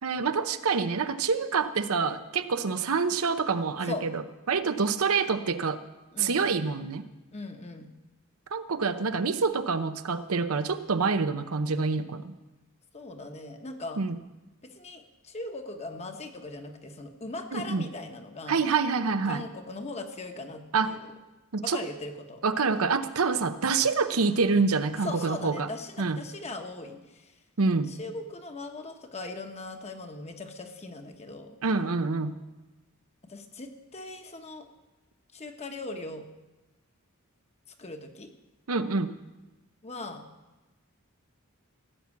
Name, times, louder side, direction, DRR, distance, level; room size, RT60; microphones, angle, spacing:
voice 1, 0.0-5.8 6.2-7.1 8.5-12.3 14.0-14.2 17.5-17.9 18.5-19.4 20.7-21.0 21.5-21.8 22.4-25.7 26.0-26.2 27.6-28.0 31.6-32.4 38.7-39.1, right 4 dB, 80° right, 10 dB, 0.7 m, -27 dB
voice 2, 6.1-6.5 7.3-7.9 12.9-14.0 14.7-18.6 19.2-21.1 21.6-22.4 25.0-27.3 27.9-31.6 33.3-34.6 35.3-36.3 37.8-38.3 39.8-40.2, left 2 dB, 30° left, 5 dB, 1.1 m, -39 dB
16.5 x 6.0 x 8.4 m, 1.1 s
head